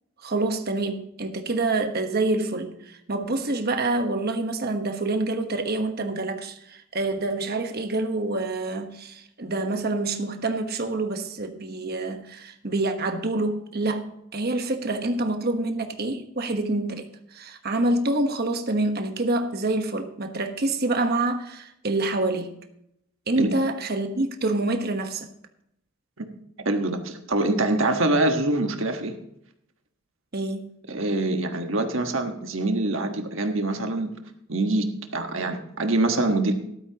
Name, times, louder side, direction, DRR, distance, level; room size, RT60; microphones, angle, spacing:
voice 1, 0.2-22.5 23.3-25.3 30.3-30.7, right 2 dB, 45° right, 1.2 m, -27 dB
voice 2, 26.6-29.1 30.9-34.1 34.5-36.5, right 2 dB, 65° right, 1.4 m, -24 dB
13.5 x 12.5 x 2.9 m
head